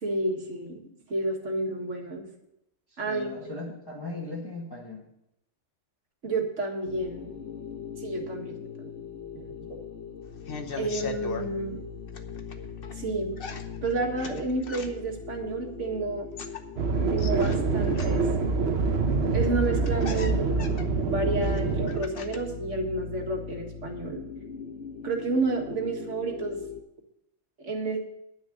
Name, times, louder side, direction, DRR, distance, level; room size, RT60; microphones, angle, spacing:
voice 1, 0.0-2.3 3.0-3.3 6.2-7.3 8.0-8.9 9.3-9.5 10.8-11.8 12.9-13.3 13.8-16.3 17.1-18.3 19.3-20.7 21.0-24.2 25.0-26.6 27.6-28.0, right 2 dB, 75° right, 2 dB, 2.2 m, -30 dB
voice 2, 2.9-5.1, left 2 dB, 20° left, -4 dB, 1.8 m, -38 dB
sound 1, 6.8-26.8, left 6 dB, 70° left, 1.2 m, -41 dB
sound 2, 10.2-11.5 12.1-13.0 13.4-15.2 16.1-18.4 19.3-19.4 19.6-22.6 22.9-23.6, left 5 dB, 50° left, 1.1 m, -40 dB
sound 3, 16.8-22.0, right 4 dB, 60° right, 1.1 m, -25 dB
10.5 x 6.3 x 7.9 m, 0.81 s
omnidirectional pair, 1.3 m